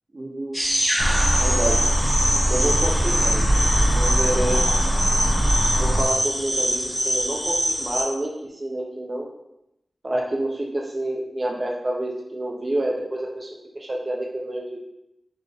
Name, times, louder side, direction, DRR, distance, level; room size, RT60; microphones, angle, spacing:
voice 1, 0.1-0.6 1.3-1.8 2.5-4.6 5.7-9.3 10.0-13.5 13.7-14.8, right 1 dB, 40° right, -1 dB, 0.5 m, -28 dB
sound 1, 0.5-8.0, equal, 10° right, 1.0 m, -24 dB
sound 2, 1.0-6.0, right 1 dB, 60° left, 0.7 m, -21 dB
3.7 x 2.4 x 3.3 m, 0.86 s
wide cardioid pair, 85°, 0 cm